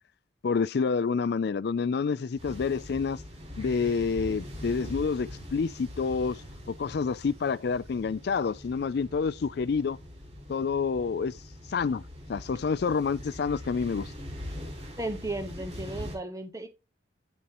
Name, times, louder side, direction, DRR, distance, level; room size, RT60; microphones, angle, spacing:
voice 1, 0.4-3.2 3.6-6.4 6.7-10.0 10.5-11.3 11.7-12.0 12.3-14.1, left 5 dB, 55° left, 0.3 m, -28 dB
sound 1, 2.4-16.2, left 1 dB, 35° right, 5.5 m, -42 dB
voice 2, 15.0-16.7, right 2 dB, 15° right, 1.1 m, -35 dB
9.2 x 7.1 x 3.0 m
head